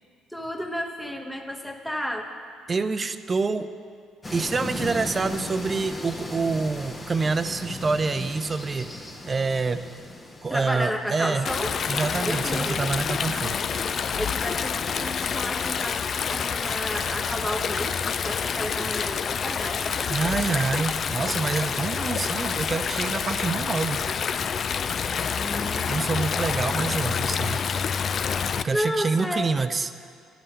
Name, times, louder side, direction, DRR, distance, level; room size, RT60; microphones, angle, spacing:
voice 1, 0.3-2.3 10.5-11.7 12.2-12.8 14.2-16.0 16.3-19.9 25.3-26.0 28.7-29.5, equal, 5° left, 2 dB, 1.1 m, -32 dB
voice 2, 2.7-3.7 4.3-8.9 9.2-9.9 10.4-11.5 11.9-13.6 20.1-24.0 25.9-27.6 28.5-29.9, right 4 dB, 35° right, 11 dB, 0.5 m, -27 dB
sound 1, 4.2-11.2, left 2 dB, 30° left, 1.3 m, -36 dB
Stream, 11.4-28.6, left 6 dB, 50° left, 0.3 m, -28 dB
10.0 x 5.5 x 8.0 m, 2.2 s
hypercardioid pair, 50°, 0 cm